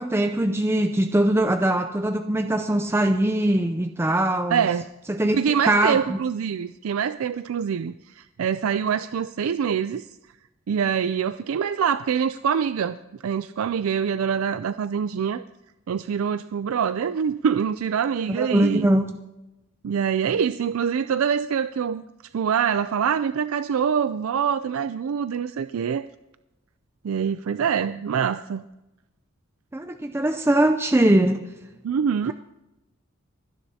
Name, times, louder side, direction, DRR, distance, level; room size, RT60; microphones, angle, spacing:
voice 1, 0.0-4.6 5.1-5.4 5.7-6.2 18.3-19.2 29.7-31.4, right 1 dB, 10° right, 6 dB, 0.5 m, -21 dB
voice 2, 4.5-4.8 5.3-10.1 10.7-13.0 13.2-15.4 15.9-18.9 19.8-22.0 22.3-26.0 27.0-28.6 31.8-32.3, right 7 dB, 80° right, 12 dB, 0.4 m, -25 dB
30.0 x 10.0 x 2.8 m, 0.97 s
head